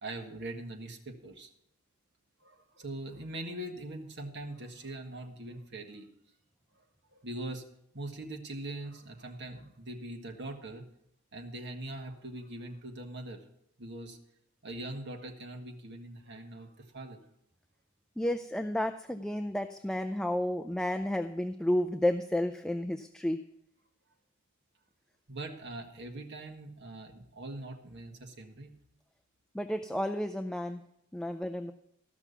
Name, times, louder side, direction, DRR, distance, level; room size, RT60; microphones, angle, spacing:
voice 1, 0.0-1.5 2.4-6.1 6.8-6.9 7.1-7.6 7.9-10.8 11.3-13.4 13.8-14.2 14.6-17.2 25.3-28.7 31.2-31.4, right 1 dB, 60° right, 3 dB, 1.7 m, -42 dB
voice 2, 18.2-23.4 29.5-30.8 31.1-31.7, left 1 dB, 5° left, 6 dB, 0.4 m, -31 dB
15.0 x 6.0 x 6.9 m, 0.77 s
head